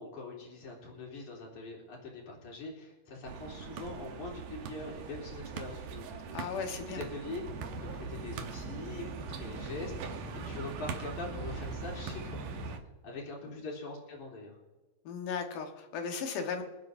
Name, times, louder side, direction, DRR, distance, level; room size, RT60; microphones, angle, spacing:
voice 1, 0.0-6.2 6.5-7.4 7.8-12.8 13.0-14.6, left 3 dB, 70° left, -2 dB, 4.8 m, -43 dB
sound 1, 3.3-12.8, right 7 dB, 90° right, 2.6 m, -42 dB
voice 2, 6.3-7.0 13.4-13.5 15.0-16.6, left 6 dB, 90° left, 4 dB, 3.0 m, -36 dB
sound 2, 7.4-12.8, right 1 dB, 10° left, 3.0 m, -43 dB
27.5 x 9.5 x 2.7 m, 1.2 s
omnidirectional pair, 3.6 m